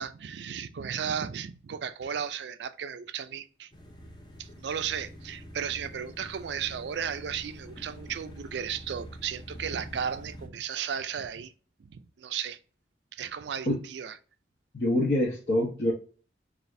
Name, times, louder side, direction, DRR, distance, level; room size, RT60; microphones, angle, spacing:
voice 1, 0.0-3.7 4.4-11.5 11.8-12.6 13.1-14.1, right 7 dB, 75° right, 0.4 m, -35 dB
sound 1, 3.7-10.5, equal, 25° left, 0.6 m, -46 dB
voice 2, 14.7-15.9, left 1 dB, 55° left, 0.9 m, -25 dB
4.1 x 2.5 x 3.1 m
head